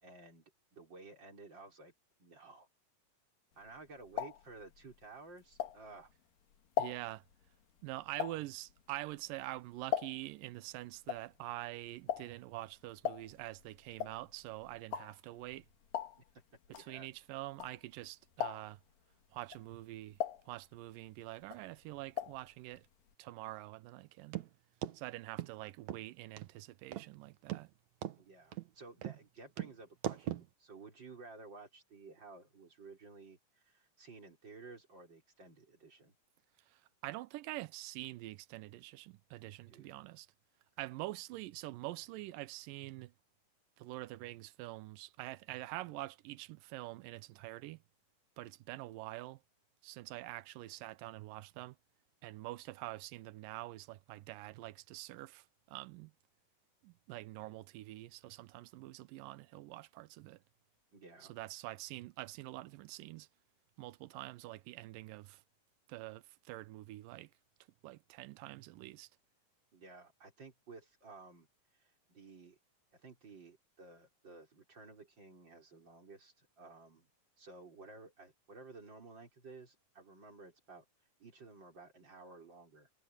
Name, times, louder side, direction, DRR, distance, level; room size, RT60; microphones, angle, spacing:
voice 1, 0.0-1.9 2.2-2.7 3.6-6.1 16.7-17.1 28.2-36.2 39.7-39.9 60.9-61.3 69.7-71.5 71.7-72.6 72.9-77.1 77.4-80.8 81.2-82.9, right 3 dB, 30° right, 5.2 m, -54 dB
sound 1, 3.6-6.2 6.5-10.5 10.7-18.0 18.3-18.9 19.4-21.1 21.4-22.5 22.7-22.8 23.1-23.2, left 10 dB, 80° left, 3.7 m, -40 dB
voice 2, 6.8-7.2 7.8-15.6 16.8-18.8 19.3-20.2 20.5-22.9 23.2-24.4 24.9-27.7 36.7-40.3 40.8-43.1 43.8-47.8 48.4-49.4 49.8-51.8 52.2-56.1 56.8-60.4 61.2-63.3 63.8-65.4 65.9-67.3 67.8-69.1, right 18 dB, 85° right, 2.4 m, -46 dB
sound 2, 24.3-24.5 24.8-25.0 25.4-25.5 25.9-26.0 26.4-26.5 26.9-27.1 27.5-27.6 28.0-28.2 28.5-28.7 29.0-29.2 29.6-29.7 30.0-30.5, right 12 dB, 65° right, 2.3 m, -39 dB
omnidirectional pair, 3.9 m